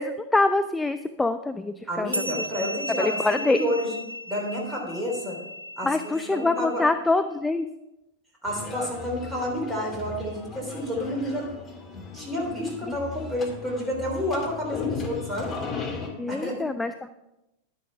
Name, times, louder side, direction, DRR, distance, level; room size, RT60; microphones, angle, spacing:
voice 1, 0.0-2.1 3.0-3.6 5.8-7.7 16.2-16.9, left 2 dB, 10° left, 11 dB, 0.4 m, -25 dB
voice 2, 1.9-3.9 4.3-5.4 5.8-6.9 8.4-11.5 11.9-15.5 16.3-16.7, equal, 10° right, -2 dB, 3.5 m, -30 dB
sound 1, 2.1-7.0, left 1 dB, 90° right, 0.4 m, -35 dB
sound 2, 8.5-16.1, left 5 dB, 25° left, 1.9 m, -36 dB
10.5 x 10.0 x 3.4 m, 0.92 s
figure-of-eight pair, 90°, 0 cm